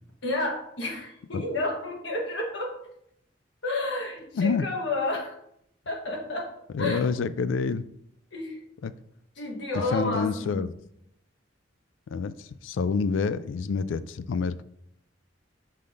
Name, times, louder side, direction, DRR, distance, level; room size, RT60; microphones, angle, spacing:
voice 1, 0.2-2.8 3.6-5.4 5.8-6.5 6.8-7.0 8.3-8.6 9.4-10.7, left 2 dB, 65° left, 1.6 m, -30 dB
voice 2, 4.4-4.7 6.7-7.9 8.8-8.9 9.9-10.7 12.1-14.6, left 5 dB, 85° left, 0.4 m, -27 dB
5.6 x 3.4 x 5.2 m
head